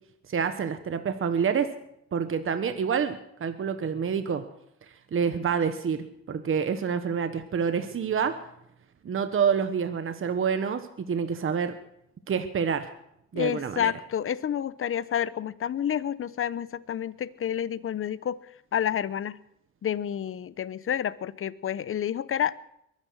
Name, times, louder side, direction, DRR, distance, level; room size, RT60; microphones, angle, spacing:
voice 1, 0.3-1.7 2.1-4.4 5.1-8.4 9.0-11.8 12.3-12.9 13.3-13.9, right 6 dB, 45° right, 9 dB, 1.2 m, -27 dB
voice 2, 13.3-18.4 18.7-19.4 19.8-22.6, left 9 dB, 45° left, 17 dB, 0.8 m, -29 dB
22.5 x 9.9 x 6.4 m, 0.76 s
cardioid pair, 90°, 30 cm